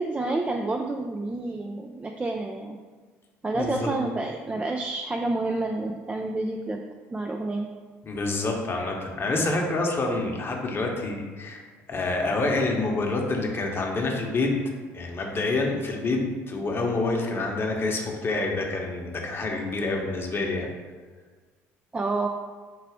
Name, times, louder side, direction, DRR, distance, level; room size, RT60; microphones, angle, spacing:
voice 1, 0.0-2.8 3.4-6.8 7.1-7.7 21.9-22.3, right 2 dB, 20° right, 2 dB, 0.4 m, -29 dB
voice 2, 3.5-3.9 8.0-11.6 11.9-14.5 14.9-16.2 16.5-20.7, left 2 dB, 35° left, 0 dB, 0.9 m, -27 dB
4.6 x 2.4 x 4.8 m, 1.5 s
hypercardioid pair, 70°, 7 cm